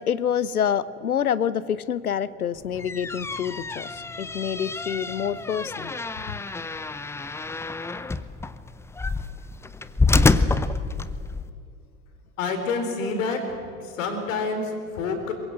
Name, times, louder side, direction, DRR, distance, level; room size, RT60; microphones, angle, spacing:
voice 1, 0.0-5.9 6.3-6.4, left 8 dB, 80° left, 19 dB, 0.8 m, -27 dB
sound 1, 2.6-11.5, left 3 dB, 5° left, 0.6 m, -27 dB
voice 2, 12.4-13.4 13.8-15.3, left 4 dB, 60° left, 5 dB, 4.2 m, -27 dB
23.0 x 21.5 x 7.9 m, 2.4 s
figure-of-eight pair, 75°, 44 cm